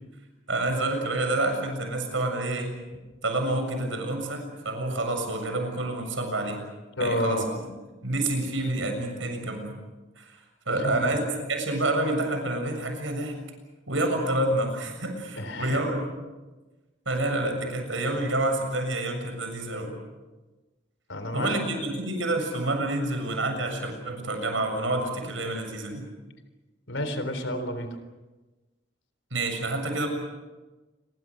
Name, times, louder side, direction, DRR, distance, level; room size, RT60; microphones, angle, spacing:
voice 1, 0.5-2.8 3.2-6.6 7.0-7.6 8.0-9.8 10.2-11.2 11.5-13.3 13.9-16.0 17.1-19.9 21.3-26.0 29.3-30.1, right 2 dB, 85° right, 4 dB, 7.2 m, -28 dB
voice 2, 7.0-7.5 10.7-11.2 15.4-15.8 21.1-21.6 26.9-28.0, left 1 dB, 80° left, 9 dB, 3.8 m, -30 dB
28.5 x 23.5 x 6.5 m, 1.2 s
head